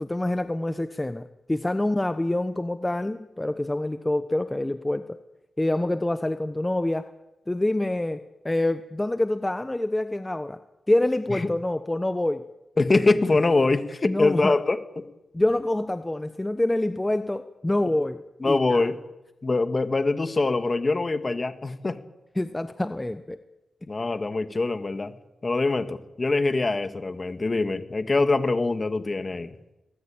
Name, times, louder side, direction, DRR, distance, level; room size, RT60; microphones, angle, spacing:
voice 1, 0.0-5.2 5.6-7.0 7.5-10.6 10.9-12.4 14.0-14.5 15.3-18.9 22.4-23.4, left 1 dB, 15° left, 10 dB, 1.1 m, -26 dB
voice 2, 12.8-15.1 18.4-19.0 19.4-22.0 23.9-25.1 25.4-29.6, left 3 dB, 35° left, 9 dB, 2.0 m, -24 dB
23.0 x 19.0 x 8.9 m, 0.99 s
cardioid pair, 70°, 0 cm